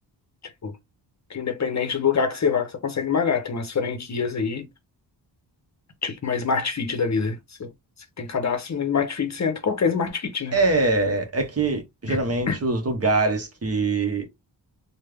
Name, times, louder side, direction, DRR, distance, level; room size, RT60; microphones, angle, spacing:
voice 1, 1.3-4.7 6.0-7.7 8.2-10.6 12.1-12.2 12.5-12.6, left 6 dB, 40° left, 0.7 m, -25 dB
voice 2, 10.5-14.3, right 3 dB, 35° right, 0.9 m, -23 dB
3.2 x 2.2 x 3.4 m
wide cardioid pair, 100°, 42 cm